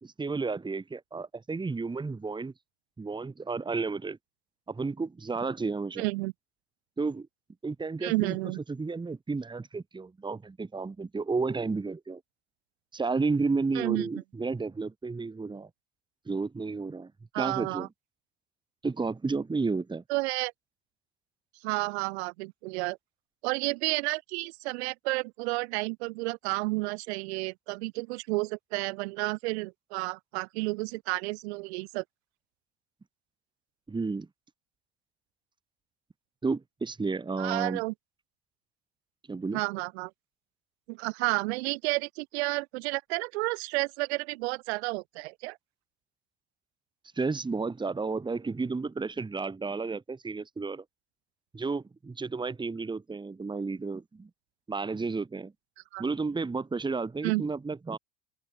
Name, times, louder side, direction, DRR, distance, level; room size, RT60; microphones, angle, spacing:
voice 1, 0.0-2.5 3.0-4.2 4.7-6.0 7.0-7.3 7.6-8.4 8.7-12.2 12.9-15.7 16.3-17.9 18.8-20.0 33.9-34.3 36.4-37.8 39.3-39.6 47.2-50.8 51.5-54.3 54.7-55.5 56.0-58.0, right 4 dB, 15° right, 1.9 m, -32 dB
voice 2, 6.0-6.3 8.0-8.6 13.7-14.1 17.3-17.9 20.1-20.5 21.6-23.0 23.4-32.0 37.4-37.9 39.5-40.1 40.9-45.6 55.9-56.0 57.2-57.4, right 25 dB, 75° right, 2.7 m, -31 dB
open air
supercardioid pair, 95°, 33 cm